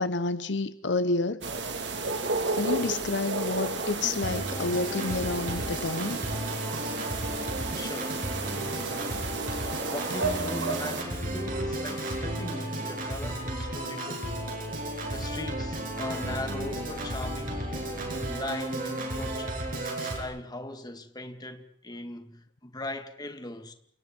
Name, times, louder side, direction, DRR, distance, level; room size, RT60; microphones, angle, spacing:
voice 1, 0.0-1.4 2.5-6.2, left 3 dB, 70° left, 0.9 m, -29 dB
sound 1, 1.4-11.0, right 3 dB, 70° right, 3.3 m, -32 dB
Organ, 4.2-20.2, right 1 dB, 50° right, 7.1 m, -34 dB
voice 2, 7.8-9.2 9.5-9.6 9.9-14.4 15.1-17.7 18.3-23.7, left 2 dB, 20° left, 2.1 m, -39 dB
29.0 x 28.5 x 4.5 m
head